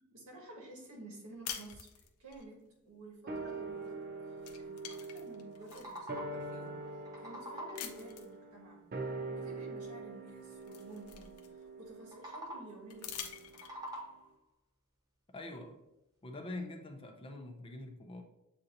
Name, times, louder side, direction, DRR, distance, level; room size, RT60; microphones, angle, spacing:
voice 1, 0.0-1.9 2.2-6.7 7.2-8.8 9.3-13.4, right 1 dB, 75° right, -1 dB, 1.5 m, -52 dB
sound 1, 1.4-2.4 3.8-4.1 4.4-6.0 6.6-6.7 7.7-8.4 9.8-9.9 10.3-11.8 12.9-14.0, left 8 dB, 80° left, 0.6 m, -46 dB
sound 2, 3.3-13.9 14.1-14.2, right 3 dB, 45° right, 0.5 m, -44 dB
sound 3, 5.4-6.5 6.9-8.0 12.0-12.9 13.3-14.4, right 1 dB, 15° right, 0.8 m, -46 dB
voice 2, 15.3-15.8 16.2-18.2, left 2 dB, 25° left, 4 dB, 0.5 m, -44 dB
7.6 x 2.7 x 2.5 m, 0.89 s
head